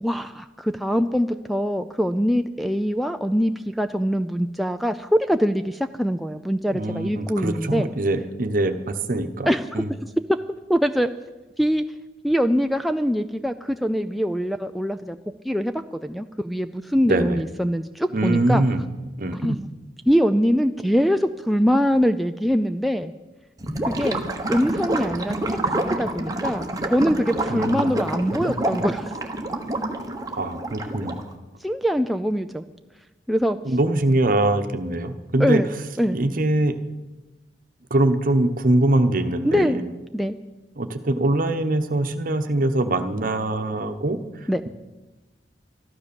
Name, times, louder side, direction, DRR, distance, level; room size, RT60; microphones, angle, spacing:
voice 1, 0.0-7.9 9.5-9.8 10.3-10.4 10.7-11.1 11.6-11.8 12.2-15.2 15.4-15.7 16.0-18.6 19.4-19.7 20.1-23.1 23.9-24.2 24.5-25.3 25.9-29.1 31.6-32.6 33.3-33.6 35.4-35.7 36.0-36.2 39.4-39.8 40.1-40.4 44.5-44.6, equal, ahead, 6 dB, 0.4 m, -23 dB
voice 2, 6.7-9.9 17.1-17.4 18.1-18.8 19.2-19.6 27.5-27.9 30.4-31.2 33.6-35.6 36.1-36.7 37.9-39.8 40.8-44.2, right 2 dB, 50° right, 8 dB, 1.1 m, -23 dB
Gurgling / Liquid, 23.6-31.3, right 1 dB, 20° right, 1.2 m, -28 dB
13.5 x 12.0 x 7.0 m, 1.1 s
head